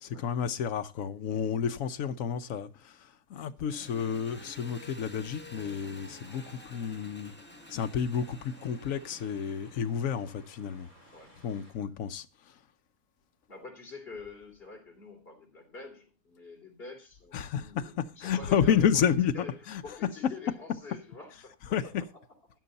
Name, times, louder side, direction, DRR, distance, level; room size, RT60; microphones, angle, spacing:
voice 1, 0.0-7.3 7.7-10.9 11.4-12.3 17.3-20.3 21.6-22.1, left 8 dB, 65° left, 1.2 m, -30 dB
Engine, 3.7-10.2, left 2 dB, 10° left, 1.2 m, -50 dB
sound 1, 5.5-11.7, equal, 25° right, 6.9 m, -58 dB
voice 2, 6.3-6.8 11.1-11.4 13.5-18.9 19.3-21.5 22.0-22.1, left 4 dB, 40° left, 3.5 m, -47 dB
12.5 x 10.0 x 4.0 m
omnidirectional pair, 1.5 m